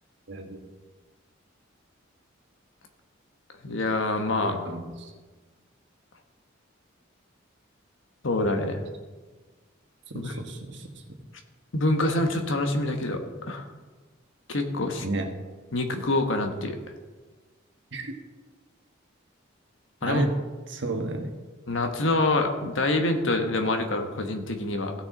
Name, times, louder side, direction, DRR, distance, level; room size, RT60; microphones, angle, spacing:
voice 1, 0.3-0.6 4.4-5.1 10.1-11.0 15.0-15.3 17.9-18.1 20.0-20.4 20.7-21.3, right 2 dB, 65° right, 3 dB, 1.4 m, -32 dB
voice 2, 3.6-4.5 8.2-8.8 10.1-10.3 11.7-13.2 13.5-13.6 14.5-15.0 15.7-16.8 20.0-20.2 21.7-24.9, left 2 dB, 75° left, 5 dB, 1.3 m, -26 dB
16.5 x 6.4 x 3.9 m, 1.3 s
head